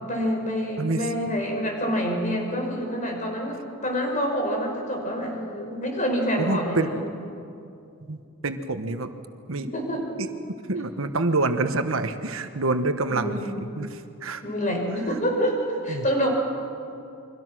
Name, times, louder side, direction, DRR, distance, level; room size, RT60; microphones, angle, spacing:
voice 1, 0.0-7.3 9.6-10.1 13.1-13.5 14.4-16.3, equal, 35° left, 2 dB, 5.2 m, -27 dB
voice 2, 6.4-6.9 8.1-9.1 9.5-9.7 10.2-10.3 10.7-13.4 13.8-14.4 14.9-15.0 15.9-16.0, right 2 dB, 80° right, 9 dB, 1.2 m, -27 dB
29.5 x 23.5 x 6.2 m, 2.6 s
head